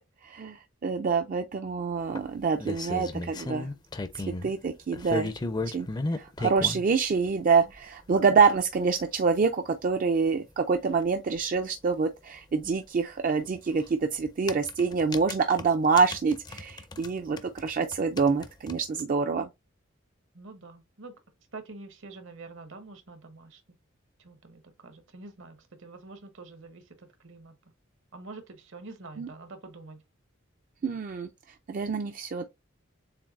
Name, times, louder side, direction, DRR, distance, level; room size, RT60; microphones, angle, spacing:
voice 1, 0.2-3.7 4.4-5.3 5.7-5.9 6.2-19.5 29.2-29.3 30.8-31.3 31.7-32.4, right 5 dB, 45° right, 0.4 m, -26 dB
sound 1, 2.1-4.5 4.9-6.8 7.8-7.9 8.3-8.4 8.6-8.7 8.9-9.0 11.0-11.1 11.4-11.5 13.4-13.6 14.3-17.1 17.4-19.0, left 2 dB, 20° left, 0.4 m, -34 dB
voice 2, 20.3-21.1 21.5-23.6 24.2-27.6 28.1-30.0, right 3 dB, 70° right, 1.0 m, -46 dB
7.1 x 2.6 x 2.5 m
head